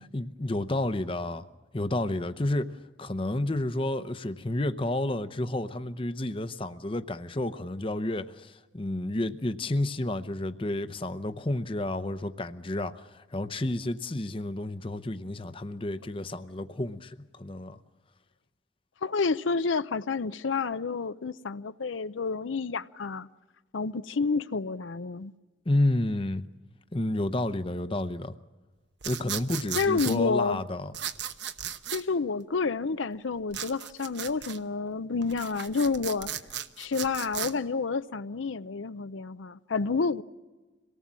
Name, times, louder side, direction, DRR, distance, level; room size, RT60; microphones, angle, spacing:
voice 1, 0.0-1.5 1.7-2.7 3.0-17.8 25.7-26.4 26.9-28.3 29.1-30.9, left 1 dB, 30° left, 0.7 m, -30 dB
voice 2, 19.0-23.3 23.7-25.3 29.7-30.6 31.9-36.3 36.8-40.2, left 4 dB, 85° left, 0.6 m, -29 dB
sound 1, 29.0-30.2 30.9-32.0 33.5-34.6 35.2-37.5, right 9 dB, 65° right, 1.0 m, -36 dB
27.0 x 18.5 x 7.5 m
head